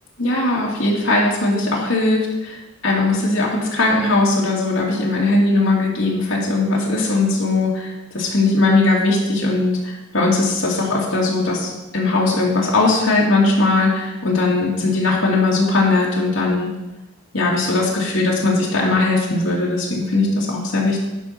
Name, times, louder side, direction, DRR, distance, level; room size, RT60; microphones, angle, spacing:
voice 1, 0.2-16.7 17.3-21.0, left 2 dB, 85° left, -5 dB, 2.3 m, -19 dB
10.5 x 5.8 x 5.8 m, 1.0 s
head